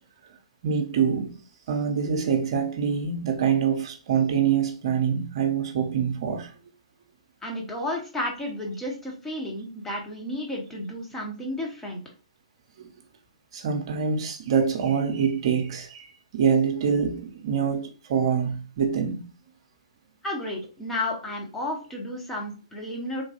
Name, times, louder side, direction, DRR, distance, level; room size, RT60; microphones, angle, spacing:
voice 1, 0.6-1.3 1.7-6.5 12.8-12.9 13.5-19.2, right 7 dB, 45° right, 0.7 m, -25 dB
voice 2, 7.4-12.0 20.2-23.2, left 1 dB, 10° left, 0.8 m, -32 dB
3.2 x 2.2 x 2.8 m
figure-of-eight pair, 130°, 4 cm